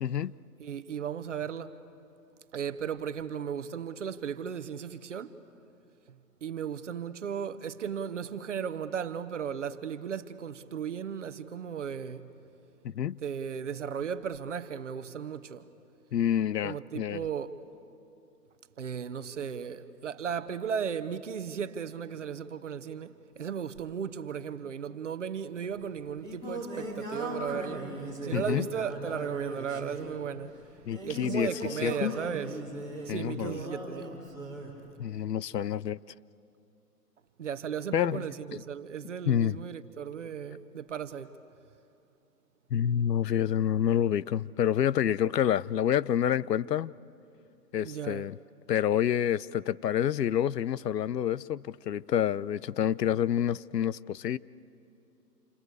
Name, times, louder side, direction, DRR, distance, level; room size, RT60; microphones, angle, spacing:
voice 1, 0.0-0.3 12.8-13.2 16.1-17.2 28.3-28.7 30.9-32.1 33.1-33.6 35.0-36.0 37.9-38.3 38.5-38.6 39.3-39.6 42.7-46.9 47.7-48.4 48.7-54.4, left 10 dB, 75° left, 0.7 m, -28 dB
voice 2, 0.6-1.7 2.5-5.3 6.4-12.3 13.2-15.6 16.6-17.6 18.8-27.9 28.2-30.6 31.0-32.5 33.0-34.2 37.4-41.4 47.8-48.3, right 7 dB, 45° right, 1.1 m, -36 dB
Singing, 25.7-34.8, right 1 dB, 5° left, 2.3 m, -39 dB
28.0 x 24.5 x 8.1 m
hypercardioid pair, 165°, 49 cm